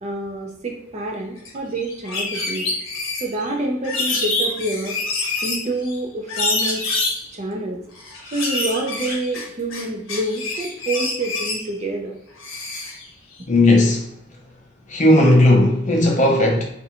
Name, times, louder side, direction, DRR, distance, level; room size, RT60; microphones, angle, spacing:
voice 1, 0.0-2.7 3.2-5.0 5.4-6.9 7.3-7.8 8.3-12.1, right 2 dB, 35° right, 0.4 m, -27 dB
sound 1, 1.5-1.6 1.8-3.5 3.8-6.0 6.3-7.2 8.0-9.8 10.1-11.6 12.4-13.1, left 3 dB, 80° left, 0.7 m, -26 dB
voice 2, 13.5-14.0 14.9-16.6, left 1 dB, 40° left, 0.5 m, -15 dB
2.5 x 2.1 x 2.8 m
head